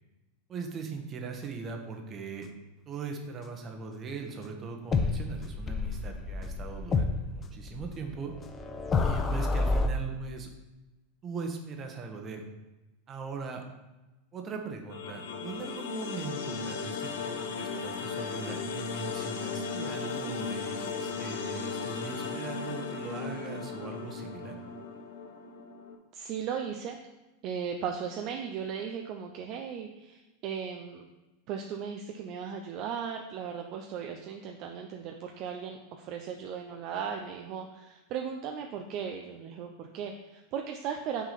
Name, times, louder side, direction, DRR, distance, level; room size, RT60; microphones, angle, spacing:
voice 1, 0.5-2.5 2.9-8.3 9.0-10.5 11.2-12.4 13.1-13.6 14.3-24.6, right 4 dB, 30° right, 3 dB, 1.1 m, -40 dB
sound 1, 4.9-9.9, left 3 dB, 25° left, 0.6 m, -30 dB
sound 2, 14.9-25.9, left 5 dB, 75° left, 0.8 m, -36 dB
voice 2, 26.1-27.0 27.4-31.1 31.5-41.2, right 7 dB, 50° right, 3 dB, 0.5 m, -37 dB
6.0 x 3.7 x 5.7 m, 1.1 s
hypercardioid pair, 105°, 0 cm